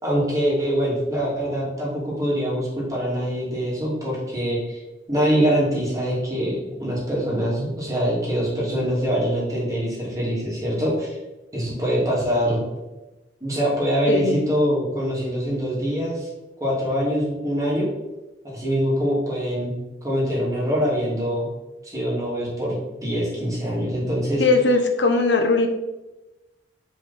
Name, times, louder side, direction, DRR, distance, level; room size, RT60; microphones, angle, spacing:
voice 1, 0.0-4.8 5.1-11.2 11.5-12.6 13.4-16.3 16.6-17.9 18.4-19.7 20.0-21.5 21.8-24.4, equal, 20° right, -5 dB, 2.5 m, -24 dB
voice 2, 14.1-14.4 24.4-25.7, left 3 dB, 90° left, 6 dB, 0.9 m, -19 dB
8.2 x 4.9 x 4.1 m, 1.0 s
head